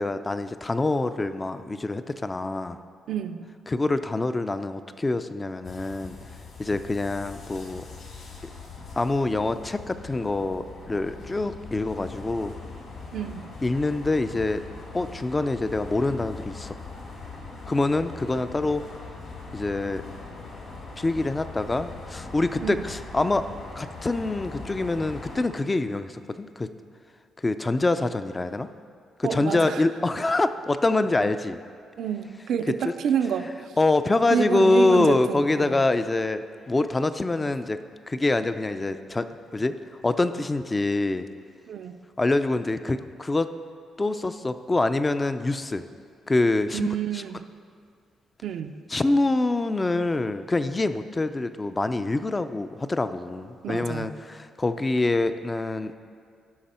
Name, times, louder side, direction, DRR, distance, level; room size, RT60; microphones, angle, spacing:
voice 1, 0.0-2.8 3.7-6.2 6.6-7.8 9.0-12.6 13.6-14.6 14.9-16.8 17.7-18.8 19.5-20.0 21.0-23.5 23.8-26.7 27.4-28.7 29.2-31.6 32.8-32.9 33.8-37.8 38.1-39.8 40.0-41.3 42.2-43.5 44.0-45.8 46.3-47.2 48.9-55.9, left 2 dB, 20° left, 11 dB, 0.4 m, -25 dB
voice 2, 3.1-3.5 13.1-13.5 22.6-22.8 29.2-29.8 32.0-33.8 34.3-35.8 41.7-42.0 46.7-47.4 48.4-48.8 53.6-54.1, right 8 dB, 70° right, 8 dB, 0.5 m, -29 dB
sound 1, 5.6-25.5, left 3 dB, 65° left, 2.3 m, -41 dB
16.0 x 5.9 x 4.3 m, 2.2 s
cardioid pair, 90°, 0 cm